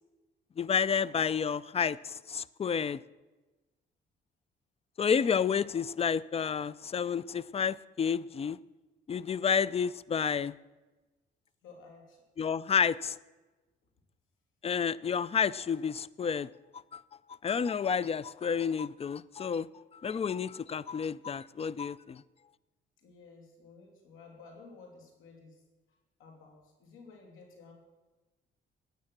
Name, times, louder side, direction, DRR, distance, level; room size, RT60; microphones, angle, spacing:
voice 1, 0.6-3.0 5.0-8.6 9.1-10.5 12.4-13.2 14.6-17.0 17.4-19.7 19.9-22.2, left 7 dB, 30° left, 20 dB, 0.4 m, -30 dB
voice 2, 11.6-12.2 23.0-27.7, left 4 dB, 85° left, 1 dB, 2.9 m, -54 dB
15.5 x 9.4 x 6.0 m, 1.2 s
cardioid pair, 90°, 20 cm